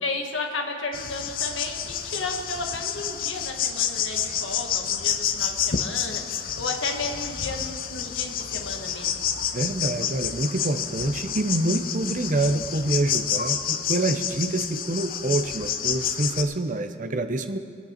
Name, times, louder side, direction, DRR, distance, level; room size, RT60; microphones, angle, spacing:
voice 1, 0.0-9.2, left 3 dB, 80° left, 3 dB, 1.5 m, -33 dB
sound 1, 0.9-16.4, left 8 dB, 50° left, 0.6 m, -29 dB
voice 2, 9.5-17.6, right 2 dB, 40° right, 8 dB, 0.7 m, -26 dB
21.5 x 8.3 x 4.4 m, 2.2 s
head